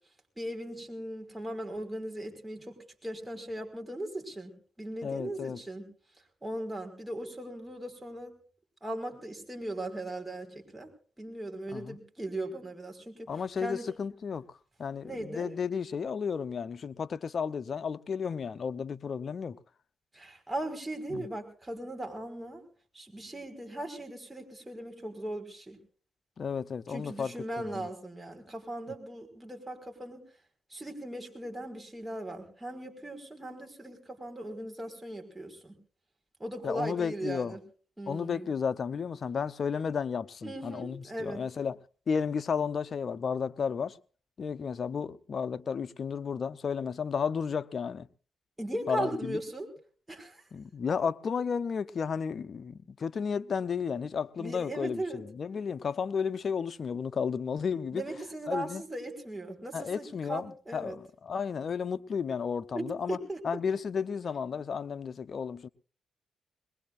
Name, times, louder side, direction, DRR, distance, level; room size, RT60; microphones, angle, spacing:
voice 1, 0.4-2.8 3.0-4.5 4.8-5.9 6.4-8.3 8.8-10.9 11.2-13.3 13.6-13.8 15.0-15.5 20.1-22.6 22.9-25.8 26.9-30.2 30.7-35.8 36.4-37.6 38.0-38.5 40.4-41.4 48.6-49.7 50.1-50.4 54.4-55.2 57.9-61.0 62.7-63.6, right 1 dB, 10° right, 5.3 m, -38 dB
voice 2, 5.0-5.6 11.7-12.0 13.3-19.6 21.1-21.3 26.4-27.3 27.7-27.9 36.6-37.6 38.1-41.8 42.1-44.0 44.4-48.1 48.9-49.4 50.5-58.0 58.5-58.8 59.7-63.2 63.4-65.7, left 6 dB, 55° left, 0.8 m, -33 dB
22.0 x 21.0 x 2.6 m
cardioid pair, 65°, 0 cm